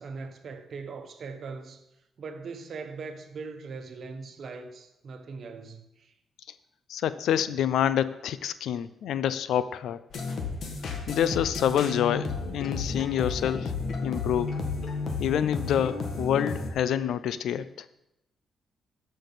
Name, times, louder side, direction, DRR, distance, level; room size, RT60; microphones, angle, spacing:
voice 1, 0.0-1.8 2.2-6.1, right 4 dB, 55° right, 1.1 m, -40 dB
voice 2, 6.9-10.0 11.1-13.7 14.0-14.6 15.2-17.7, left 9 dB, 85° left, 0.5 m, -27 dB
sound 1, 10.1-16.7, left 4 dB, 60° left, 1.7 m, -32 dB
12.5 x 5.5 x 5.6 m
cardioid pair, 130°, 0 cm